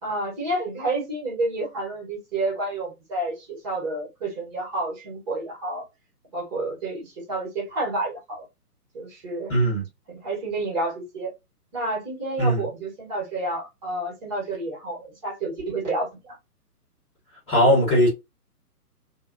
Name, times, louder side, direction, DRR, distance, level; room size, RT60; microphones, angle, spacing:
voice 1, 0.0-5.8 6.3-8.5 8.9-9.5 10.1-11.3 11.7-16.4, right 2 dB, 30° right, 1.9 m, -30 dB
voice 2, 9.5-9.8 12.4-12.6 17.5-18.1, equal, 10° left, 1.7 m, -19 dB
3.0 x 2.6 x 3.0 m
figure-of-eight pair, 140°, 47 cm